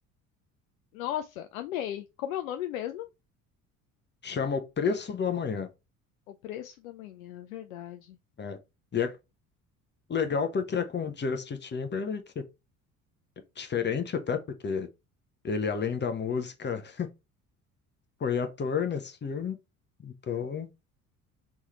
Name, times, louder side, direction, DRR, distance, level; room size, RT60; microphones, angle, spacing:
voice 1, 0.9-3.1 6.3-8.2, left 12 dB, 75° left, 0.5 m, -36 dB
voice 2, 4.2-5.7 8.4-8.6 8.9-9.2 10.1-12.4 13.6-14.4 14.6-14.9 15.4-17.1 18.2-19.6 20.0-20.7, left 6 dB, 25° left, 0.9 m, -30 dB
3.5 x 3.2 x 4.2 m
figure-of-eight pair, 55°, 42 cm